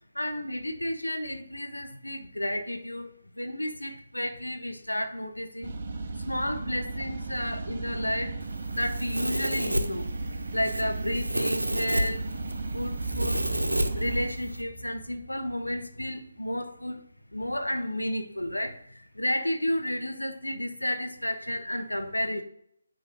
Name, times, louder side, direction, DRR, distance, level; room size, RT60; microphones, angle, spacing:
voice 1, 0.1-5.7 6.2-8.4 8.7-10.1 10.5-12.2 12.6-13.4 13.9-17.0 17.3-22.4, left 1 dB, 90° left, 8 dB, 0.9 m, -32 dB
sound 1, 5.6-14.3, right 3 dB, 45° right, 0.7 m, -35 dB
Domestic sounds home sounds, 8.4-14.6, right 1 dB, 85° right, 0.8 m, -31 dB
sound 2, 12.9-17.0, right 4 dB, 5° right, 3.0 m, -40 dB
9.7 x 3.4 x 3.8 m, 0.68 s
figure-of-eight pair, 150°, 0 cm